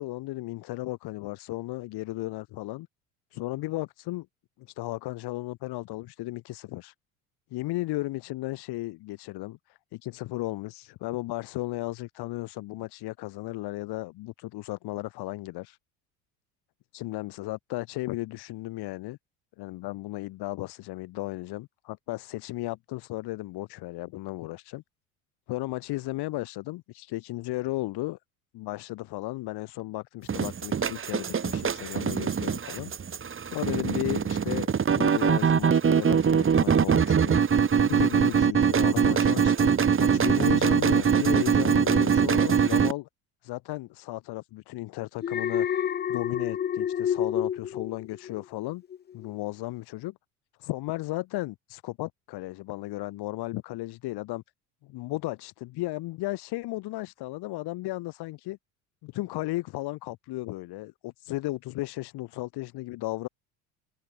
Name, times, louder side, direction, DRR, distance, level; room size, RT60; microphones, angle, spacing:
voice 1, 0.0-2.9 3.3-4.3 4.6-6.9 7.5-15.8 16.9-19.2 19.6-24.8 25.5-28.2 28.5-32.9 33.4-37.4 37.8-43.1 43.4-45.7 46.1-48.8 49.1-50.2 50.6-54.4 54.8-58.6 59.0-63.3, left 19 dB, 60° left, 7.4 m, -35 dB
sound 1, 30.3-42.9, right 7 dB, 30° right, 2.1 m, -23 dB
Alarm, 45.2-48.5 48.9-49.3, left 9 dB, 25° left, 0.6 m, -29 dB
hypercardioid pair, 70°, 43 cm